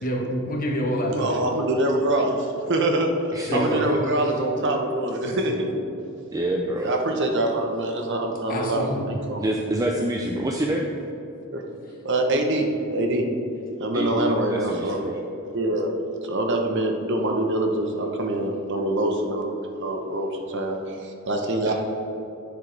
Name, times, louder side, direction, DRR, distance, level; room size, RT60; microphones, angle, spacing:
voice 1, 0.0-1.3 3.5-3.8 8.5-9.0, equal, 40° left, 0 dB, 1.2 m, -26 dB
voice 2, 1.1-5.8 6.8-9.4 11.5-11.6 12.0-13.3 13.8-15.0 15.5-15.9 16.2-21.7, right 1 dB, 55° right, 3 dB, 0.9 m, -25 dB
voice 3, 3.3-4.0 6.3-6.9 9.4-10.9 13.9-15.2 21.7-21.8, right 1 dB, 15° right, 1 dB, 0.4 m, -27 dB
10.5 x 7.4 x 3.4 m, 2.9 s
head